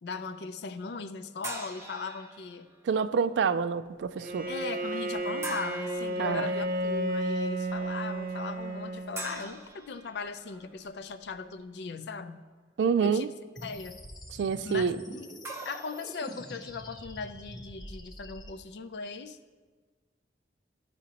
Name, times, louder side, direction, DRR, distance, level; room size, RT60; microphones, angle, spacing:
voice 1, 0.0-2.7 4.4-12.4 13.0-13.3 13.6-14.0 14.7-15.3 15.6-19.4, left 4 dB, 75° left, 11 dB, 0.4 m, -38 dB
sound 1, 1.4-2.8 5.4-6.2 9.2-10.7 15.4-16.6, right 2 dB, 15° right, 0.6 m, -42 dB
voice 2, 2.8-4.5 6.2-6.5 12.8-13.3 14.3-15.0, right 6 dB, 90° right, 14 dB, 0.3 m, -27 dB
Bowed string instrument, 4.2-9.6, right 1 dB, 55° right, 0.7 m, -33 dB
sound 2, 13.6-18.5, equal, 20° left, 0.6 m, -45 dB
13.5 x 5.0 x 2.9 m, 1.4 s
head